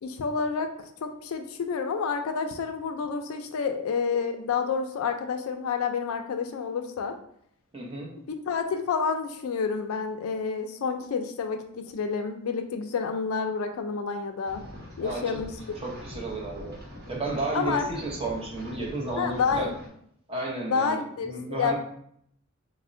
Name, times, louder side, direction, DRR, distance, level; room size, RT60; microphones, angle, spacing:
voice 1, 0.0-0.7 1.0-7.1 8.3-14.6 15.0-15.5 17.5-17.9 19.2-19.7 20.7-21.8, left 5 dB, 70° left, 6 dB, 0.3 m, -29 dB
voice 2, 7.7-8.1 15.0-15.4 15.8-16.8 17.1-19.7 20.3-21.8, right 2 dB, 25° right, -2 dB, 0.7 m, -32 dB
sound 1, 14.4-19.9, left 1 dB, 50° right, 1.1 m, -43 dB
4.1 x 2.0 x 2.5 m, 0.67 s
head